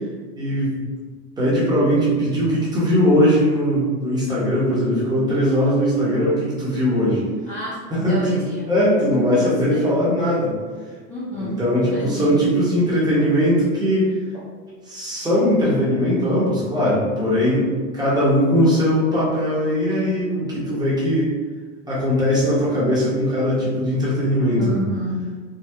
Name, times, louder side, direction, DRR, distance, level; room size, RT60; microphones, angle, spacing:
voice 1, 0.4-0.7 1.4-7.2 7.9-10.5 11.4-14.1 14.9-17.7 17.9-21.3 21.9-24.8, equal, 10° right, -8 dB, 0.9 m, -20 dB
voice 2, 7.5-8.7 9.3-10.1 11.1-12.4 14.3-14.5 24.6-25.4, equal, 15° left, -9 dB, 0.5 m, -30 dB
3.5 x 2.2 x 2.7 m, 1.5 s
hypercardioid pair, 125°, 47 cm